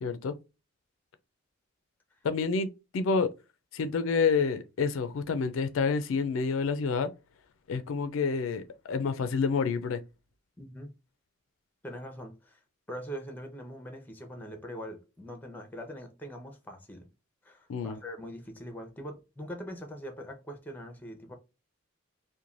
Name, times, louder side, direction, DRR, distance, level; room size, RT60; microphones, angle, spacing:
voice 1, 0.0-0.3 2.2-3.3 3.7-7.1 7.7-10.0 17.7-18.0, left 5 dB, 80° left, 0.4 m, -28 dB
voice 2, 10.6-10.9 11.8-12.6 12.9-17.1 17.4-21.3, equal, 10° left, 0.6 m, -42 dB
3.0 x 2.2 x 2.4 m
head